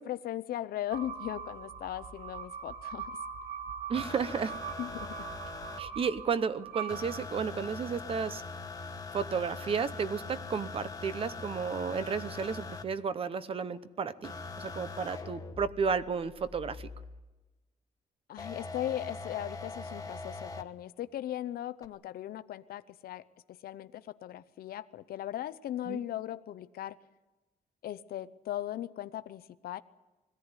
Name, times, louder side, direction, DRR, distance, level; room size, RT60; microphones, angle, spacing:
voice 1, 0.0-3.2 4.8-5.3 18.3-23.2 23.6-27.0 27.8-29.8, left 12 dB, 70° left, 13 dB, 0.7 m, -38 dB
sound 1, 0.9-7.7, right 7 dB, 65° right, 2.6 m, -42 dB
sound 2, 3.9-5.8 6.9-12.8 14.2-17.2 18.4-20.6 21.8-21.9, left 3 dB, 20° left, 1.1 m, -42 dB
voice 2, 3.9-4.5 5.8-8.4 9.1-16.9 25.9-26.0, right 6 dB, 35° right, 14 dB, 0.8 m, -33 dB
21.5 x 16.0 x 9.8 m, 1.1 s
cardioid pair, 170°, 16 cm